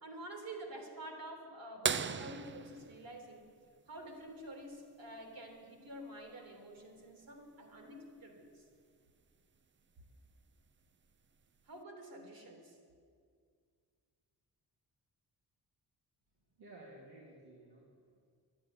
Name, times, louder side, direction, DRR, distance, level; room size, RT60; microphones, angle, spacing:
voice 1, 0.0-3.5 3.9-8.7 11.6-12.8, right 1 dB, 60° right, 3 dB, 3.3 m, -48 dB
sound 1, 1.8-4.3 6.2-6.3 8.6-8.7 10.4-10.6 11.4-11.5, right 6 dB, 30° right, 0.5 m, -37 dB
voice 2, 16.6-18.3, right 2 dB, 80° right, -5 dB, 2.9 m, -55 dB
12.5 x 9.3 x 10.0 m, 2.1 s
cardioid pair, 90°, 39 cm